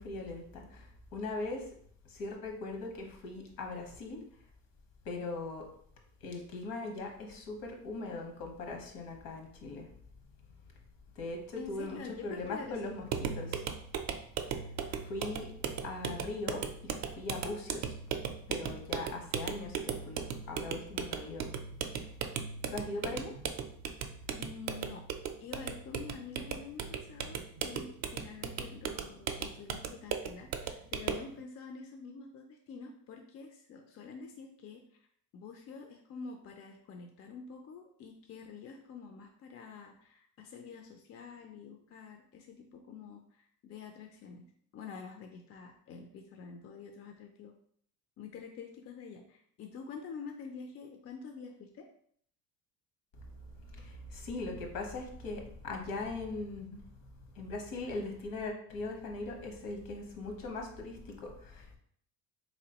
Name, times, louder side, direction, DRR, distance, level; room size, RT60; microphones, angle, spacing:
voice 1, 0.0-1.7 2.1-4.2 5.0-5.7 6.2-9.9 11.1-13.1 13.3-13.6 14.5-15.5 15.8-17.9 18.5-21.5 22.7-23.3 53.2-53.3 53.6-57.1 57.3-61.8, left 3 dB, 70° left, 2 dB, 1.1 m, -40 dB
voice 2, 11.6-12.8 24.4-25.0 25.4-34.8 35.3-44.4 44.7-47.5 48.2-51.9, left 5 dB, 40° left, 3 dB, 0.5 m, -47 dB
sound 1, 13.1-31.3, right 7 dB, 50° right, 0.4 m, -37 dB
3.6 x 3.0 x 2.9 m, 0.63 s
cardioid pair, 120°, 36 cm